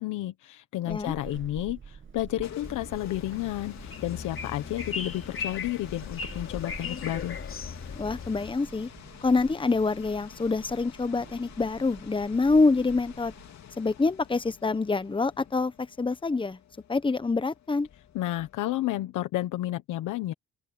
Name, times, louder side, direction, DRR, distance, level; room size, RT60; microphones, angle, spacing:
voice 1, 0.0-7.4 18.1-20.3, left 15 dB, 90° left, 1.2 m, -31 dB
Walk footsteps / Squeak, 0.9-13.6, right 6 dB, 40° right, 1.9 m, -48 dB
sound 1, 2.1-18.8, left 9 dB, 60° left, 3.3 m, -50 dB
sound 2, 2.6-8.5, left 6 dB, 45° left, 2.8 m, -38 dB
voice 2, 8.0-8.9 9.2-13.3 13.8-16.6 16.9-17.9, left 3 dB, 15° left, 1.1 m, -26 dB
open air
cardioid pair, 90°, 30 cm